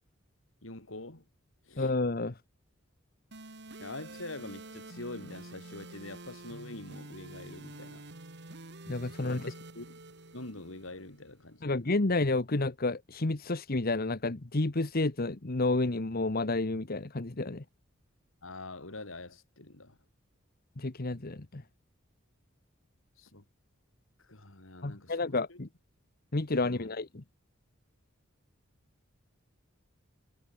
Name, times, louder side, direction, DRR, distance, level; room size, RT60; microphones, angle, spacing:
voice 1, 0.6-1.2 1.7-1.9 3.8-8.1 9.2-10.0 10.3-11.8 18.4-20.0 23.2-23.5 24.2-25.6 26.6-26.9, left 2 dB, 80° left, 3.6 m, -45 dB
voice 2, 1.8-2.4 8.9-9.4 11.6-17.6 20.8-21.6 24.8-25.7 26.3-27.2, left 2 dB, 50° left, 1.2 m, -30 dB
sound 1, 3.3-11.3, right 2 dB, 60° right, 3.3 m, -48 dB
head